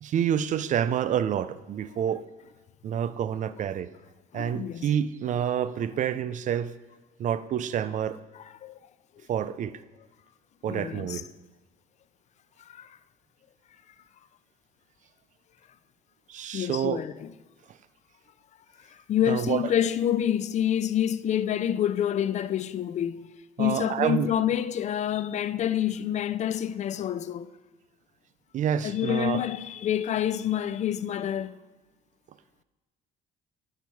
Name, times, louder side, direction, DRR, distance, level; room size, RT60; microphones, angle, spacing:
voice 1, 0.0-2.2 2.8-3.9 4.3-6.7 7.2-8.2 9.3-9.7 10.6-11.2 16.3-17.0 19.3-19.6 23.6-24.3 28.5-29.4, right 9 dB, 50° right, 0.4 m, -28 dB
voice 2, 4.3-4.9 8.6-8.8 10.7-11.2 12.7-12.9 16.5-17.3 19.1-23.3 23.6-27.5 28.8-31.6, left 10 dB, 45° left, 0.4 m, -27 dB
10.5 x 5.7 x 4.6 m
cardioid pair, 110°, 17 cm